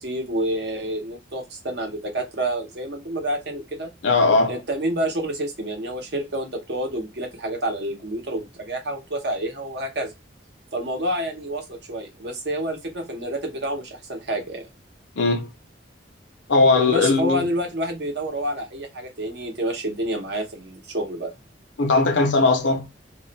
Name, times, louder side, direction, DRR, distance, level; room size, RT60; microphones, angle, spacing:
voice 1, 0.0-3.9 4.5-10.1 10.7-14.7 16.7-21.3, right 1 dB, 60° right, 0.8 m, -28 dB
voice 2, 4.0-4.6 15.2-15.5 16.5-17.4 21.8-22.8, left 3 dB, 75° left, 0.7 m, -19 dB
2.4 x 2.1 x 3.9 m
head